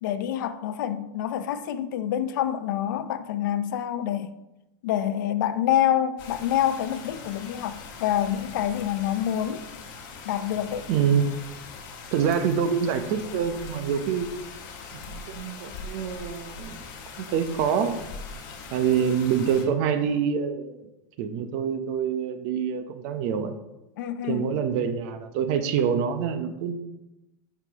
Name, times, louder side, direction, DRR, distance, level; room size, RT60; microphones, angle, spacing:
voice 1, 0.0-4.3 4.8-9.6 10.3-10.9 24.0-24.5, left 11 dB, 75° left, 0.6 m, -27 dB
sound 1, 6.2-19.6, left 4 dB, 45° left, 1.6 m, -41 dB
voice 2, 10.9-11.2 12.1-14.3 14.9-16.9 17.2-18.0 18.7-20.8 21.2-23.5 24.2-26.8, right 7 dB, 55° right, 0.8 m, -26 dB
9.2 x 5.9 x 2.9 m
supercardioid pair, 140°, 11 cm